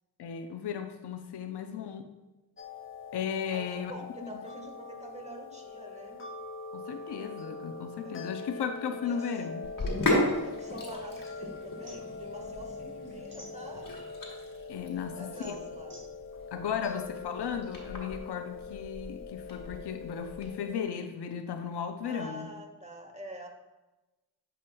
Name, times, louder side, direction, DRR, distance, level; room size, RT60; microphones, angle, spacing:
voice 1, 0.2-2.0 3.1-3.9 4.2-4.3 6.7-9.7 14.7-15.6 16.5-22.5, left 7 dB, 90° left, 8 dB, 0.6 m, -35 dB
voice 2, 1.5-1.8 3.5-6.2 8.0-8.6 9.0-9.3 10.2-13.9 14.9-16.0 22.0-23.5, right 1 dB, 15° right, 1 dB, 1.4 m, -46 dB
sound 1, 2.6-20.8, left 4 dB, 30° left, 0.7 m, -43 dB
Sink (filling or washing), 9.6-20.5, left 1 dB, 55° left, 1.6 m, -36 dB
sound 2, 9.8-11.3 11.6-14.1 14.6-17.7, right 1 dB, 55° right, 1.9 m, -55 dB
9.6 x 5.0 x 2.2 m, 1.1 s
cardioid pair, 50°, 39 cm